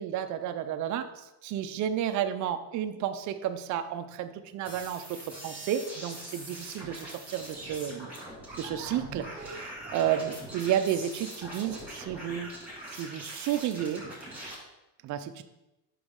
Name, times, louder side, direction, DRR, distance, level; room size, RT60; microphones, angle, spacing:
voice 1, 0.0-8.1 8.6-12.5 12.9-14.0 15.0-15.4, right 10 dB, 40° right, 9 dB, 0.5 m, -32 dB
sound 1, 4.6-14.5, right 1 dB, 5° right, 2.0 m, -42 dB
5.2 x 5.0 x 3.6 m, 0.96 s
supercardioid pair, 120°, 49 cm